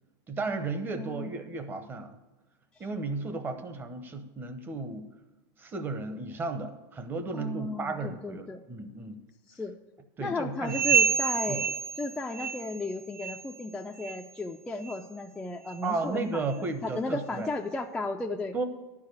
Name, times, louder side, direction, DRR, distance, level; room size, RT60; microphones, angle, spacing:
voice 1, 0.3-2.2 2.8-5.1 5.6-9.2 10.2-10.8 11.5-11.6 15.8-17.5 18.5-18.6, right 3 dB, 20° right, 8 dB, 0.8 m, -34 dB
voice 2, 0.9-1.3 2.8-2.9 7.3-8.6 9.5-9.7 10.2-16.5 16.8-18.5, left 2 dB, 5° left, 1 dB, 0.4 m, -35 dB
sound 1, 10.7-12.9 13.1-13.5 14.0-14.2 14.8-15.0 15.7-15.8 16.5-16.6, right 6 dB, 45° right, 1.6 m, -28 dB
11.0 x 4.8 x 8.1 m, 1.1 s
supercardioid pair, 150°, 11 cm